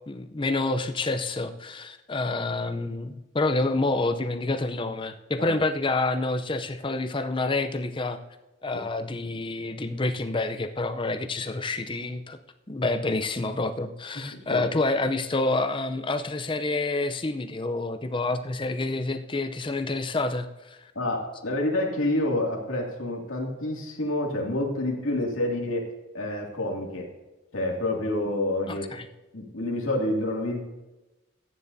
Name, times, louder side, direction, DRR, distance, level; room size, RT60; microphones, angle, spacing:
voice 1, 0.1-8.2 8.6-12.4 12.7-20.9 28.7-29.1, left 2 dB, 25° left, 8 dB, 0.6 m, -28 dB
voice 2, 14.3-14.6 21.0-25.9 26.1-27.1 27.5-28.9 29.3-30.7, left 1 dB, 80° left, -1 dB, 2.3 m, -28 dB
14.5 x 9.5 x 2.7 m, 1.1 s
head